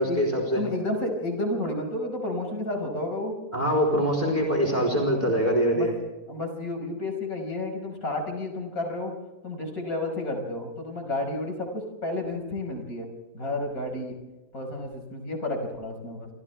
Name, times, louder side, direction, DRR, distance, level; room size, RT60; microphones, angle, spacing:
voice 1, 0.0-0.6 3.5-5.9, equal, 30° right, 1 dB, 4.1 m, -23 dB
voice 2, 0.6-3.3 5.7-5.9 6.3-9.1 9.4-13.1 13.3-14.2 14.5-16.3, left 2 dB, 70° left, 2 dB, 6.1 m, -31 dB
28.5 x 26.5 x 3.5 m, 1.1 s
omnidirectional pair, 1.6 m